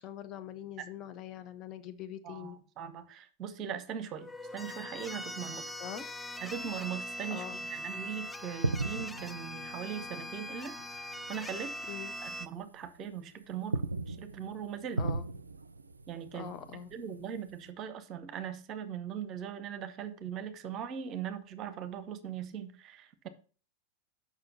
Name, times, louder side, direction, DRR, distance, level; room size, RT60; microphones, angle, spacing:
voice 1, 0.0-2.6 5.8-6.1 7.3-7.6 11.9-12.1 15.0-15.3 16.3-16.9, left 9 dB, 35° left, 9 dB, 0.8 m, -43 dB
voice 2, 2.2-5.7 6.4-11.0 11.3-11.7 12.2-15.0 16.1-16.6 16.9-23.3, right 8 dB, 35° right, 11 dB, 0.9 m, -40 dB
sound 1, 4.2-12.5, equal, 5° left, 0.5 m, -41 dB
sound 2, 8.4-11.4 11.6-11.9 12.4-13.2 13.5-17.7, right 3 dB, 80° right, 0.4 m, -38 dB
6.7 x 6.0 x 5.5 m, 0.40 s
figure-of-eight pair, 90°, 0 cm